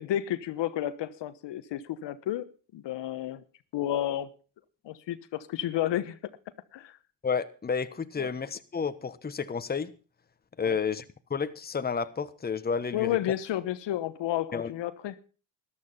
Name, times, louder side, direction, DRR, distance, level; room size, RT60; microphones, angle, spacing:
voice 1, 0.0-2.5 2.7-3.4 3.7-4.3 4.8-6.2 6.7-7.0 8.2-8.3 10.6-10.7 12.9-15.1, left 12 dB, 60° left, 1.1 m, -31 dB
voice 2, 7.2-9.9 10.6-11.0 11.3-13.2 14.5-14.7, left 6 dB, 20° left, 1.1 m, -31 dB
13.5 x 12.0 x 5.5 m
supercardioid pair, 75°, 48 cm